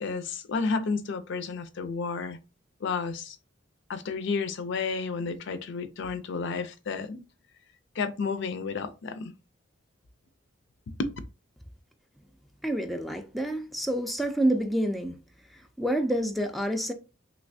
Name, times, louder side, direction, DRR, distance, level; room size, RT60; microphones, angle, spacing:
voice 1, 0.0-2.4 2.8-3.4 3.9-7.2 8.0-9.3 11.0-11.1, left 4 dB, 65° left, 0.4 m, -31 dB
voice 2, 12.6-15.2 15.8-16.9, right 1 dB, ahead, 0.3 m, -28 dB
3.2 x 2.9 x 2.6 m
head